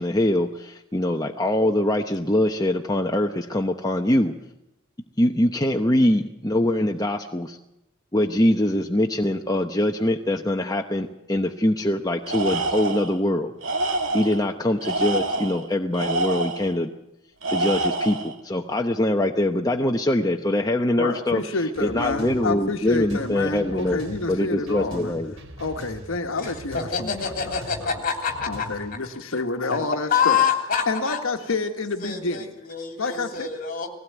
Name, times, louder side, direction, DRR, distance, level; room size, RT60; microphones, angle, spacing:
voice 1, 0.0-4.3 5.2-7.6 8.1-13.5 14.1-16.9 17.5-21.4 21.8-24.0 24.3-25.3, left 1 dB, 20° left, 3 dB, 0.9 m, -23 dB
Tools, 12.3-13.2 13.6-14.4 14.8-16.7 17.4-18.3, right 2 dB, 65° right, 2.6 m, -26 dB
voice 2, 21.0-25.2 25.6-27.9 28.5-30.4 30.9-32.5 33.0-33.6, left 3 dB, 70° left, 6 dB, 1.3 m, -29 dB
sound 1, 21.8-29.0, equal, 85° right, 4.0 m, -41 dB
voice 3, 26.4-29.0 29.7-29.8 30.1-31.2 32.0-33.9, left 7 dB, 40° left, 4 dB, 3.3 m, -26 dB
19.5 x 16.5 x 9.3 m, 0.86 s
head